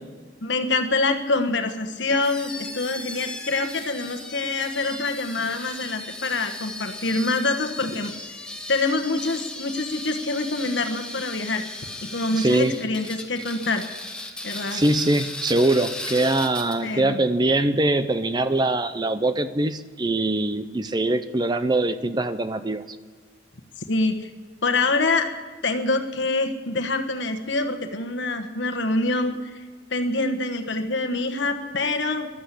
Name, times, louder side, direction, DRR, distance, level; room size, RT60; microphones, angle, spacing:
voice 1, 0.4-8.4 8.7-11.7 12.0-13.8 14.4-14.8 16.8-17.2 23.9-24.3 24.6-25.3 25.6-29.6 29.9-32.3, left 3 dB, 65° left, 6 dB, 1.3 m, -25 dB
sound 1, 2.2-17.0, left 2 dB, 5° left, 1.1 m, -36 dB
voice 2, 12.4-12.8 14.7-22.8, right 2 dB, 20° right, 12 dB, 0.5 m, -22 dB
14.0 x 12.0 x 8.4 m, 1.5 s
head